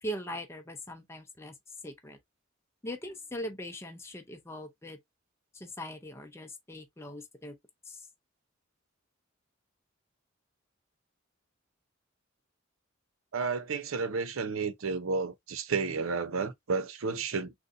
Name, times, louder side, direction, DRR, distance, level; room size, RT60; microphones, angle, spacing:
voice 1, 0.0-1.5 1.8-2.2 2.8-5.0 5.5-7.5 7.9-8.0, equal, 15° left, 0.6 m, -40 dB
voice 2, 13.3-17.5, right 4 dB, 90° right, 0.6 m, -32 dB
3.8 x 2.6 x 2.5 m
head